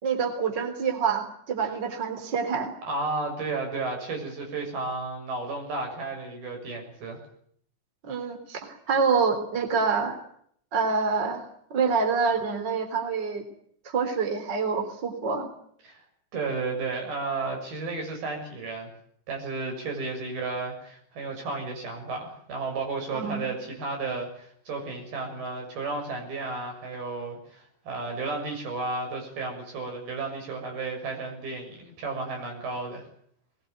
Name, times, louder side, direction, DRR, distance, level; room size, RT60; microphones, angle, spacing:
voice 1, 0.0-2.7 8.0-10.2 10.7-11.5 11.7-13.4 13.8-15.5 23.1-23.5, right 5 dB, 30° right, 6 dB, 3.9 m, -26 dB
voice 2, 2.9-7.2 15.8-16.0 16.3-18.9 19.3-33.1, right 3 dB, 85° right, 2 dB, 8.6 m, -33 dB
21.5 x 20.5 x 9.4 m, 0.66 s
omnidirectional pair, 4.2 m